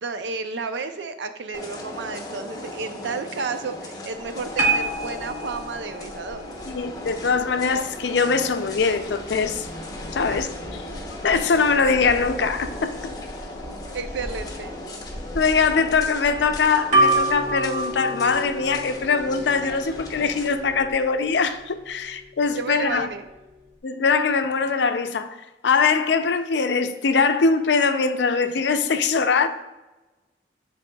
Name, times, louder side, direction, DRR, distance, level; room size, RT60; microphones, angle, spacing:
voice 1, 0.0-6.4 10.3-10.5 13.9-14.7 22.5-23.3, right 4 dB, 90° right, 0.5 m, -32 dB
sound 1, 1.5-20.5, left 1 dB, 20° left, 0.9 m, -37 dB
sound 2, 4.1-23.8, right 2 dB, 45° right, 1.9 m, -31 dB
voice 2, 6.7-9.7 10.1-10.5 11.2-13.0 15.3-23.1 23.8-25.4 25.6-29.5, left 5 dB, 75° left, 0.5 m, -22 dB
10.0 x 4.1 x 2.3 m
head